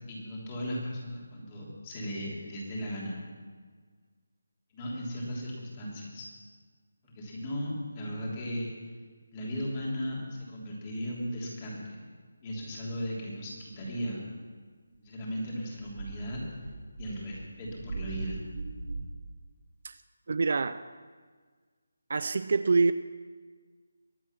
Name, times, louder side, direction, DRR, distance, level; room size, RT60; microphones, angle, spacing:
voice 1, 0.1-3.2 4.7-6.3 7.0-8.7 9.3-12.0 12.4-14.3 15.0-16.4 17.0-18.4, equal, 20° left, -4 dB, 3.2 m, -36 dB
sound 1, 12.6-12.9 13.6-14.0 14.9-15.0 15.7-19.0, right 3 dB, 70° right, 3.7 m, -40 dB
voice 2, 20.3-20.8 22.1-22.9, right 4 dB, 50° right, 13 dB, 0.4 m, -25 dB
23.0 x 8.1 x 6.0 m, 1.5 s
figure-of-eight pair, 170°, 0 cm